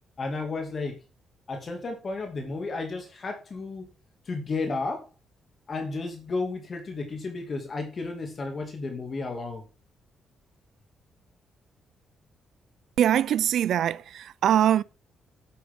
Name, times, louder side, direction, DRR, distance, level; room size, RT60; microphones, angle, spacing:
voice 1, 0.2-1.0 1.5-3.9 4.2-5.1 5.7-9.6, left 3 dB, 40° left, 2.3 m, -32 dB
voice 2, 13.0-14.8, right 10 dB, 70° right, 0.5 m, -23 dB
15.5 x 8.4 x 3.7 m
cardioid pair, 115°, 0 cm